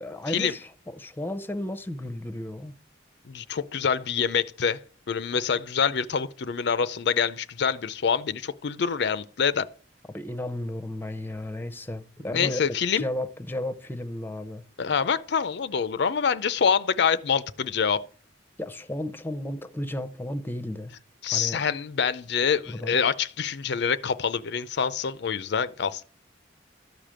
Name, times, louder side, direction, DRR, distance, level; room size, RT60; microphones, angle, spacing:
voice 1, 0.0-0.7 1.0-2.8 10.1-14.6 18.6-20.9 21.3-21.6 22.7-23.0, left 1 dB, 10° left, 0.7 m, -33 dB
voice 2, 3.3-4.8 5.1-9.7 12.3-13.0 14.8-18.0 21.2-26.0, left 6 dB, 60° left, 0.5 m, -26 dB
13.0 x 5.0 x 7.5 m
head